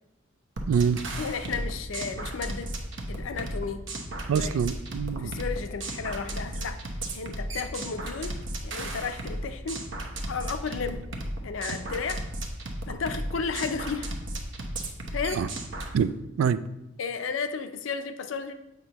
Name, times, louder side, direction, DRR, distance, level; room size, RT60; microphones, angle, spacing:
sound 1, 0.6-16.0, right 1 dB, 65° right, 0.9 m, -35 dB
voice 1, 0.7-1.0 4.3-5.3 15.4-15.5 15.9-16.6, right 7 dB, 80° right, 15 dB, 0.3 m, -25 dB
voice 2, 1.2-2.7 3.1-3.9 4.3-4.6 5.2-6.8 7.1-8.3 8.6-9.8 10.3-11.0 11.4-12.2 12.9-14.1 15.1-15.4 17.0-18.5, left 5 dB, 70° left, 9 dB, 0.5 m, -33 dB
8.0 x 5.3 x 2.9 m, 0.89 s
head